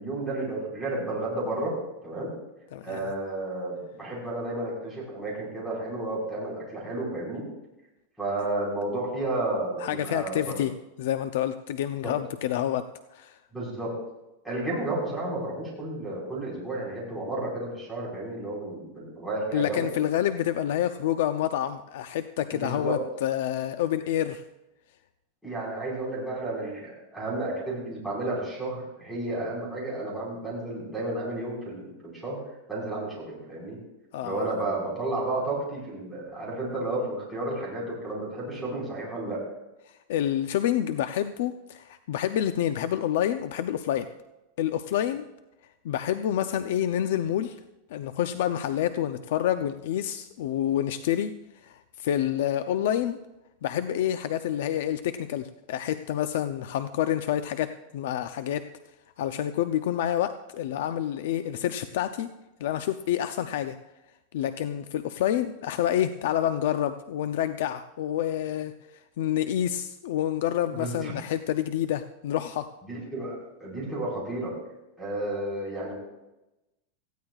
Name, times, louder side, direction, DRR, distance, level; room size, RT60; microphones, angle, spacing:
voice 1, 0.0-1.7 2.0-2.3 2.8-7.4 8.2-10.6 12.0-12.1 13.5-13.9 14.4-19.9 22.5-23.0 25.4-32.4 32.7-33.8 34.2-39.4 70.7-71.1 72.8-74.5 75.0-75.9, right 2 dB, ahead, -4 dB, 4.7 m, -32 dB
voice 2, 2.7-3.1 9.8-10.7 11.0-12.8 13.1-13.4 19.5-24.4 34.1-34.5 40.1-44.1 44.6-45.2 45.8-47.6 47.9-51.3 51.6-53.2 53.6-58.6 59.2-62.3 62.6-63.8 64.3-68.7 69.2-72.7, left 11 dB, 65° left, 10 dB, 0.6 m, -28 dB
18.5 x 14.5 x 2.4 m, 0.97 s
supercardioid pair, 170°, 0 cm